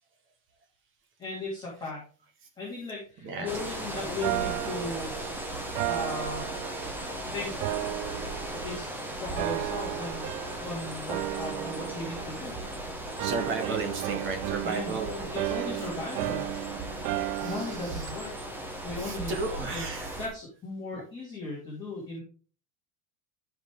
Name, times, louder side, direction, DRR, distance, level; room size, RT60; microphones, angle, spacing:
voice 1, 1.2-2.1 2.6-5.1 5.9-6.5 7.3-7.6 8.5-10.3 10.6-12.6 13.6-13.7 14.6-14.9 15.3-16.4 17.4-18.3 18.8-19.3 19.6-19.9 20.2-22.2, left 2 dB, 10° left, -6 dB, 2.7 m, -37 dB
voice 2, 3.2-3.6 13.1-15.7 16.2-16.4 17.3-18.1 19.0-20.2 20.9-21.0, right 3 dB, 30° right, 5 dB, 1.6 m, -35 dB
sound 1, 3.5-20.3, right 1 dB, 5° right, 1.1 m, -37 dB
sound 2, 4.2-7.2 7.6-8.9 9.4-10.8 11.1-12.8 13.2-17.9, right 18 dB, 80° right, 0.5 m, -34 dB
14.0 x 5.1 x 3.7 m, 0.40 s
cardioid pair, 175°, 42 cm